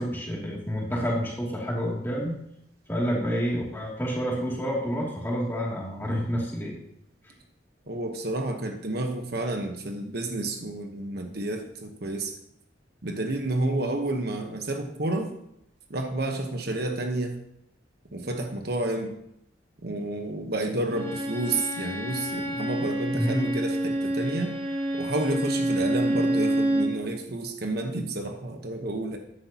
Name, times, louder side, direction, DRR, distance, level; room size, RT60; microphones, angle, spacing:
voice 1, 0.0-2.4 2.9-6.7 23.1-23.6, equal, 10° left, -3 dB, 2.6 m, -28 dB
voice 2, 7.8-12.3 13.0-15.3 15.9-17.4 18.1-19.1 19.8-24.6 24.9-29.2, right 2 dB, 55° right, 4 dB, 1.1 m, -30 dB
Bowed string instrument, 20.9-27.0, right 1 dB, 30° right, 5.0 m, -28 dB
14.0 x 10.0 x 2.9 m, 0.76 s
head